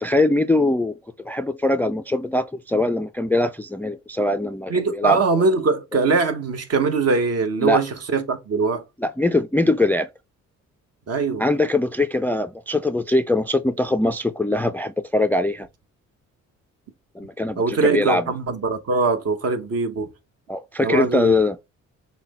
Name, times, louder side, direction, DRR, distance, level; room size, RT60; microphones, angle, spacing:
voice 1, 0.0-5.5 7.6-7.8 9.0-10.1 11.4-15.7 17.2-18.2 20.5-21.6, left 2 dB, 5° left, 0.3 m, -22 dB
voice 2, 4.7-8.8 11.1-11.4 17.6-20.1 20.8-21.3, right 4 dB, 55° right, 1.1 m, -22 dB
5.7 x 2.2 x 4.1 m
cardioid pair, 90°, 30 cm